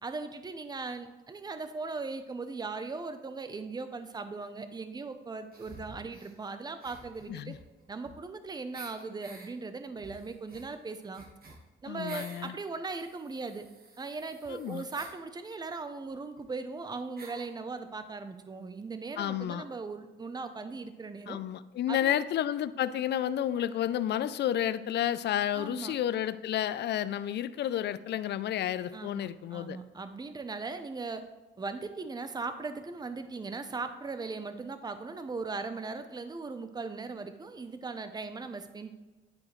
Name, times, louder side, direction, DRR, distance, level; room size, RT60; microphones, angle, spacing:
voice 1, 0.0-7.5 7.9-11.3 11.8-13.7 14.0-21.4 21.9-22.2 25.5-25.9 28.9-31.2 31.6-38.9, right 4 dB, 20° right, 9 dB, 0.6 m, -39 dB
sound 1, 5.5-6.4 6.8-8.4 8.7-9.5 10.0-12.5 12.9-15.2 16.1-16.2 16.4-16.5 17.2-17.5, right 3 dB, 50° right, 1.4 m, -50 dB
voice 2, 11.9-12.5 14.5-14.8 19.2-19.7 21.3-29.8, left 11 dB, 60° left, 15 dB, 0.4 m, -31 dB
9.6 x 4.8 x 3.1 m, 1.2 s
cardioid pair, 90°, 20 cm